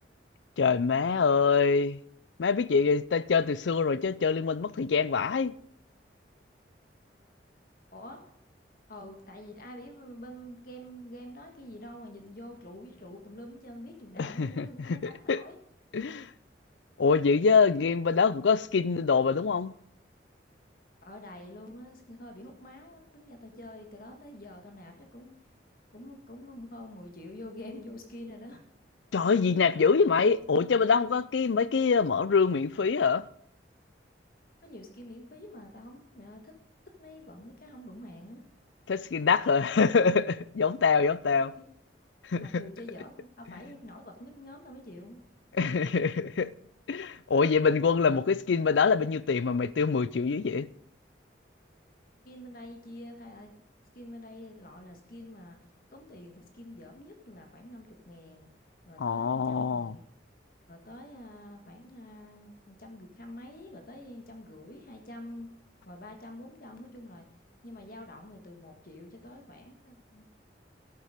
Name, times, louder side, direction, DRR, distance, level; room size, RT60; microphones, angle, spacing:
voice 1, 0.6-2.0 2.4-5.6 14.2-15.4 15.9-16.3 17.0-19.7 29.1-33.3 38.9-41.5 42.3-42.6 45.5-46.5 46.9-50.7 59.0-60.0, left 5 dB, 80° left, 0.5 m, -25 dB
voice 2, 7.9-8.2 8.9-15.6 21.0-25.3 25.9-28.6 34.6-36.5 37.0-38.4 41.6-41.7 42.4-45.2 52.2-53.5 53.9-55.6 55.9-58.5 58.8-60.0 60.7-65.5 65.8-67.3 67.6-70.2, left 1 dB, 50° left, 1.6 m, -46 dB
12.5 x 8.2 x 5.0 m
head